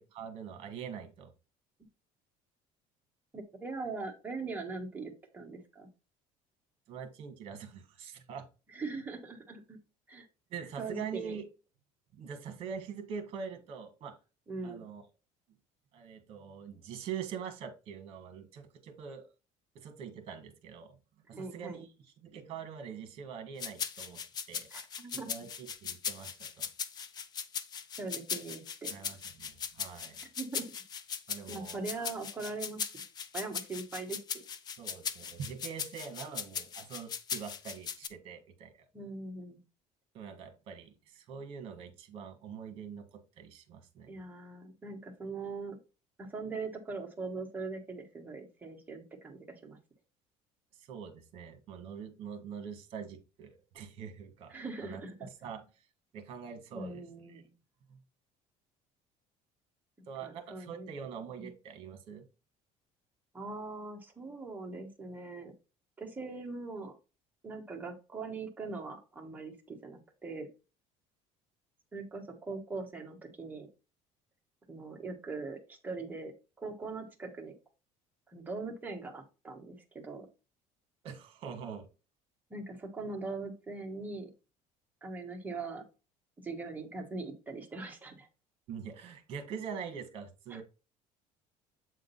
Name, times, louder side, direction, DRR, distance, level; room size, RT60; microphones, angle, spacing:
voice 1, 0.0-1.3 6.9-8.5 10.5-11.4 12.1-14.2 14.6-15.0 15.9-19.3 19.7-20.9 21.3-24.2 24.5-24.7 25.1-26.7 28.9-30.2 31.3-31.8 34.8-38.7 40.1-44.2 50.8-54.5 54.8-55.6 56.1-57.4 57.9-58.0 60.0-62.2 81.0-81.9 88.7-90.6, right 7 dB, 40° right, 7 dB, 1.6 m, -44 dB
voice 2, 3.3-5.9 8.7-9.8 10.1-10.3 10.8-11.4 14.5-14.8 21.3-21.8 24.7-25.3 28.0-28.9 30.4-30.7 31.5-32.8 33.3-34.5 38.9-39.6 44.1-45.8 46.2-49.8 54.5-55.1 56.7-57.5 60.2-60.9 61.4-61.5 63.3-65.5 66.0-66.9 67.4-70.5 71.9-73.7 74.7-76.3 76.6-77.5 78.3-80.3 82.5-84.3 85.0-85.8 86.4-88.3 90.5-90.6, right 3 dB, 10° right, 2 dB, 1.2 m, -41 dB
sound 1, 23.6-38.1, left 7 dB, 30° left, 0.5 m, -39 dB
7.9 x 3.7 x 4.0 m, 0.31 s
cardioid pair, 175°, 14 cm